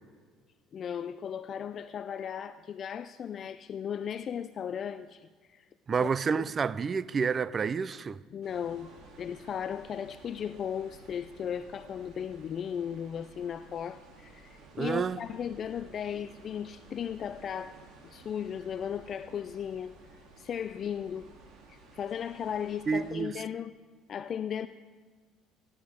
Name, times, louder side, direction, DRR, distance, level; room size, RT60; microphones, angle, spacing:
voice 1, 0.7-5.7 6.0-6.1 6.3-6.5 8.3-17.8 18.0-20.0 20.4-21.3 21.7-23.8 24.1-24.7, left 8 dB, 40° left, 0.3 m, -36 dB
voice 2, 5.9-8.2 14.8-15.2 22.9-23.3, right 5 dB, 30° right, 0.4 m, -29 dB
sound 1, 8.4-23.2, right 3 dB, 60° right, 2.9 m, -54 dB
16.0 x 11.0 x 5.0 m
cardioid pair, 110°, 0 cm